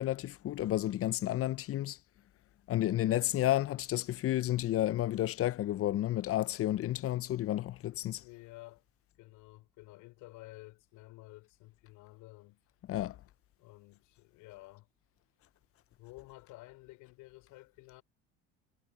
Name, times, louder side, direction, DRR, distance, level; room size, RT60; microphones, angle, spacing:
voice 1, 0.0-2.0 2.7-8.2 12.9-13.2, left 14 dB, 45° left, 0.7 m, -31 dB
voice 2, 2.9-3.3 7.9-8.8 9.2-12.6 13.6-14.9 16.0-18.0, left 20 dB, 70° left, 5.8 m, -52 dB
hypercardioid pair, 80°, 32 cm